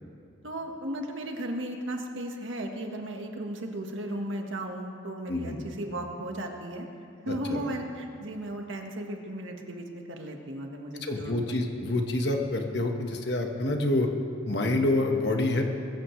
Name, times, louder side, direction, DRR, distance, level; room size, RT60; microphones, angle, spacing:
voice 1, 0.4-6.9 7.2-11.6, right 1 dB, 80° right, 2 dB, 1.5 m, -35 dB
voice 2, 5.3-5.6 7.3-7.6 11.0-14.1 14.5-15.6, left 2 dB, 55° left, 3 dB, 1.4 m, -27 dB
21.0 x 14.5 x 3.2 m, 2.5 s
head